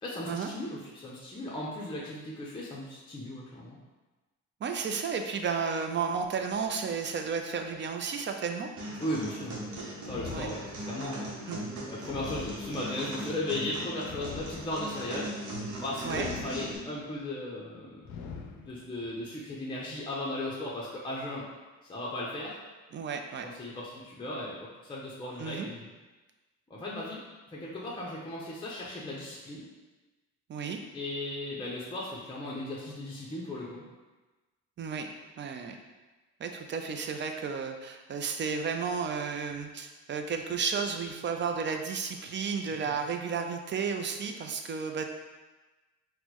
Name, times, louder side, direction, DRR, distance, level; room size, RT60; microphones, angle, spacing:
voice 1, 0.0-3.8 9.0-9.6 10.0-11.3 11.9-15.3 15.8-18.1 18.6-21.5 21.8-22.6 23.4-25.9 26.7-27.2 27.5-29.7 30.9-33.9 42.8-43.0, left 1 dB, 15° left, -5 dB, 0.6 m, -36 dB
voice 2, 4.6-8.7 10.3-10.5 11.5-11.6 16.0-16.3 22.9-23.5 25.4-25.7 30.5-30.8 34.8-35.1 35.4-35.8 36.4-45.0, right 6 dB, 40° right, 5 dB, 0.4 m, -33 dB
sound 1, 8.8-16.8, right 1 dB, 75° right, 0.9 m, -39 dB
sound 2, 10.0-11.1 12.0-13.1 14.0-15.1 16.0-17.1 18.0-19.1, left 5 dB, 65° left, 0.5 m, -43 dB
4.2 x 2.1 x 2.9 m, 1.2 s
cardioid pair, 90°, 30 cm